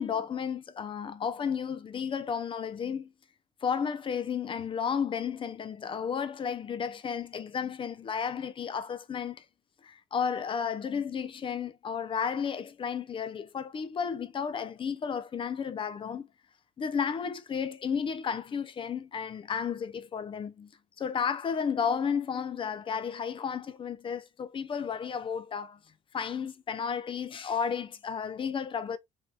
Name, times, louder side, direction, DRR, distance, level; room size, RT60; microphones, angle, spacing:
voice 1, 0.0-3.1 3.6-9.4 9.8-16.3 16.8-20.7 21.0-25.8 26.1-29.0, left 7 dB, 30° left, 0.4 m, -33 dB
3.3 x 2.7 x 2.2 m
cardioid pair, 110°, 17 cm